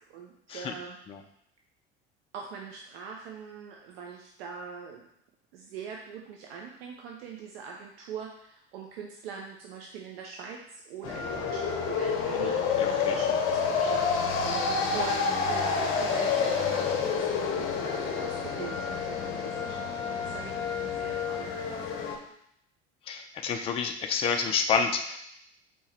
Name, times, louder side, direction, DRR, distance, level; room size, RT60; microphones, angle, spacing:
voice 1, 0.1-1.0 2.3-5.1 5.5-22.0, right 6 dB, 60° right, 1 dB, 0.6 m, -43 dB
sound 1, 11.0-22.2, left 5 dB, 40° left, 0.7 m, -29 dB
voice 2, 12.8-13.2 23.1-25.2, left 6 dB, 20° left, 5 dB, 0.3 m, -29 dB
4.4 x 2.9 x 3.2 m, 0.74 s
figure-of-eight pair, 70°, 34 cm